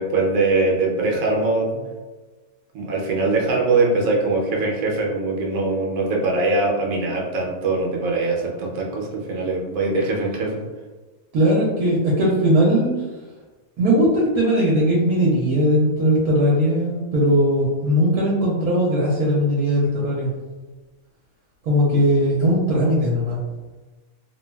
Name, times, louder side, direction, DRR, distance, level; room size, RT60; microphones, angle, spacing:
voice 1, 0.0-1.8 2.7-10.6, right 3 dB, 70° right, -2 dB, 1.1 m, -22 dB
voice 2, 11.3-12.9 13.8-20.3 21.6-23.4, equal, 90° right, -5 dB, 1.1 m, -19 dB
3.1 x 2.3 x 2.2 m, 1.2 s
omnidirectional pair, 1.6 m